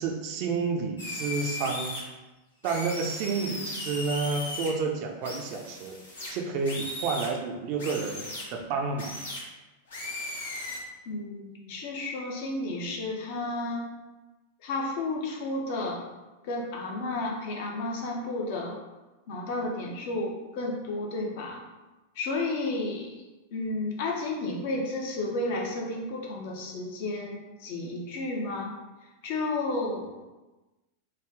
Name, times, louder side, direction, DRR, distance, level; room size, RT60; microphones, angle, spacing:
voice 1, 0.0-2.0 2.6-6.0 6.3-9.2, right 4 dB, 45° right, 2 dB, 0.5 m, -30 dB
sound 1, 1.0-2.0 2.6-4.7 5.2-7.3 7.8-8.4 9.0-9.4 9.9-10.8, left 2 dB, 70° left, 1.0 m, -37 dB
voice 2, 11.1-13.9 14.6-16.0 16.4-18.8 19.3-21.6 22.1-23.1 23.5-28.7 29.2-30.2, left 2 dB, 50° left, 0 dB, 0.7 m, -32 dB
3.3 x 2.3 x 3.5 m, 1.1 s
figure-of-eight pair, 90°, 0 cm